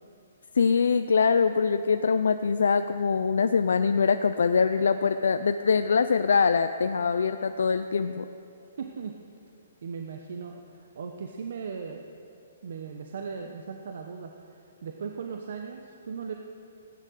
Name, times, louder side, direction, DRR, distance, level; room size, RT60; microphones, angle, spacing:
voice 1, 0.5-8.3, left 5 dB, 80° left, 9 dB, 0.5 m, -23 dB
voice 2, 8.8-9.2 9.8-12.0 12.6-16.3, right 6 dB, 65° right, 4 dB, 1.0 m, -38 dB
16.0 x 9.7 x 6.6 m, 2.8 s
hypercardioid pair, 145°, 0 cm